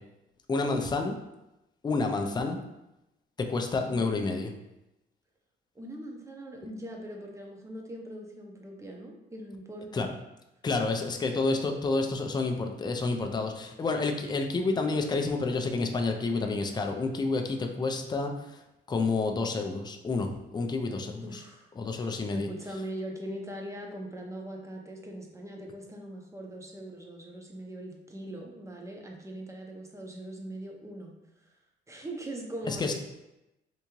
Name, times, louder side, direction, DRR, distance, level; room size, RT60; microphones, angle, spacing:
voice 1, 0.5-1.2 1.8-2.6 3.4-4.5 9.9-10.1 10.6-18.5 18.9-21.4 21.8-22.5 32.7-32.9, left 3 dB, 20° left, 4 dB, 0.4 m, -29 dB
voice 2, 3.8-4.1 5.7-10.2 21.2-31.1 31.4-31.5 31.9-32.9, right 1 dB, 15° right, 1 dB, 0.7 m, -41 dB
3.5 x 2.6 x 3.0 m, 0.92 s
cardioid pair, 90°, 20 cm